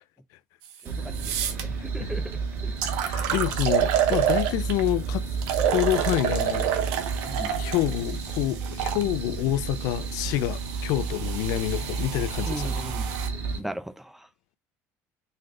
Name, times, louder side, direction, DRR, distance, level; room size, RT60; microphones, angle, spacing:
sound 1, 0.6-0.7 1.1-1.6 2.3-2.4 2.8-4.9 5.4-9.0 9.9-13.3, right 10 dB, 90° right, 0.9 m, -29 dB
sound 2, 0.8-13.6, right 4 dB, 45° right, 1.9 m, -32 dB
voice 1, 1.2-2.4 2.6-2.7 7.3-7.6 12.5-13.1 13.6-14.3, right 1 dB, 5° right, 0.7 m, -37 dB
voice 2, 3.0-5.3 5.6-6.9 7.6-12.7 13.5-13.6, left 15 dB, 80° left, 0.4 m, -28 dB
3.9 x 3.3 x 3.7 m
cardioid pair, 110°, 6 cm